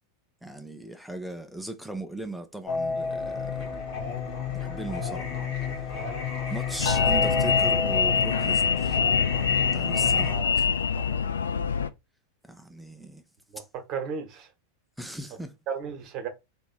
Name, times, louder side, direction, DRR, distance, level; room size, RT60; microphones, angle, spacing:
voice 1, 0.4-3.7 4.5-5.4 6.5-9.0 9.7-10.7 12.4-13.2 13.6-13.7 15.0-15.5, right 2 dB, ahead, 0.7 m, -38 dB
Singing, 2.7-10.3, left 4 dB, 45° left, 1.6 m, -31 dB
sound 1, 6.8-11.9, left 6 dB, 70° left, 0.4 m, -24 dB
voice 2, 10.1-10.6 11.0-11.2 13.5-13.6 13.9-14.5 15.7-16.3, right 6 dB, 35° right, 1.3 m, -35 dB
3.6 x 3.0 x 4.5 m
figure-of-eight pair, 90°, 0 cm